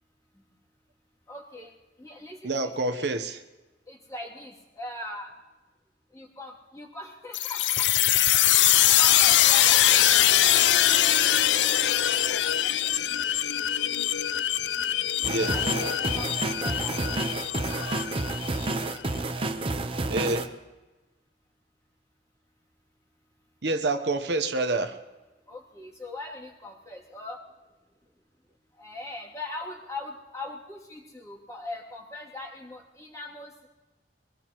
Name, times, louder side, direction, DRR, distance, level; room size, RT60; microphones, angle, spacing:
voice 1, 1.3-1.7 2.0-3.1 3.9-5.3 6.1-7.9 8.3-9.8 15.5-17.0 25.5-27.4 28.8-33.7, left 2 dB, 20° left, -3 dB, 2.7 m, -40 dB
voice 2, 2.4-3.4 15.2-15.6 20.1-20.5 23.6-25.0, right 2 dB, 70° right, 7 dB, 0.9 m, -27 dB
sound 1, 7.3-18.7, left 12 dB, 85° left, 0.5 m, -23 dB
sound 2, 15.2-20.5, right 2 dB, 30° right, 0.8 m, -30 dB
23.5 x 18.0 x 3.0 m, 1.2 s
head